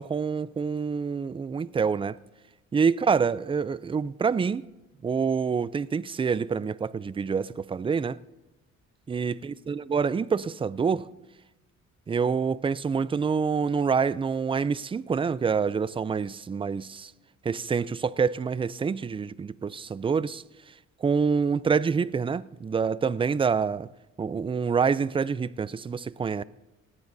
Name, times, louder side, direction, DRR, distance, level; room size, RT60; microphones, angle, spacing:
voice 1, 0.0-2.2 2.7-4.6 5.0-8.2 9.1-11.1 12.1-17.1 17.4-20.4 21.0-23.9 24.2-26.4, right 5 dB, 20° right, 0.3 m, -26 dB
18.0 x 17.0 x 2.7 m
cardioid pair, 90°, 30 cm